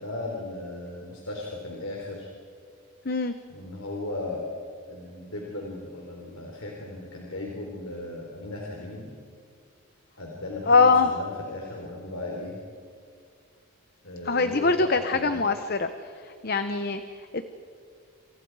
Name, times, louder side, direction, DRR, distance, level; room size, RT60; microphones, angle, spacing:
voice 1, 0.0-2.3 3.5-4.6 4.9-9.1 10.2-12.6 14.0-15.4, left 2 dB, 70° left, -1 dB, 4.0 m, -36 dB
voice 2, 10.7-11.1 14.2-17.4, left 4 dB, 45° left, 9 dB, 0.9 m, -23 dB
28.0 x 27.5 x 4.9 m, 2.4 s
head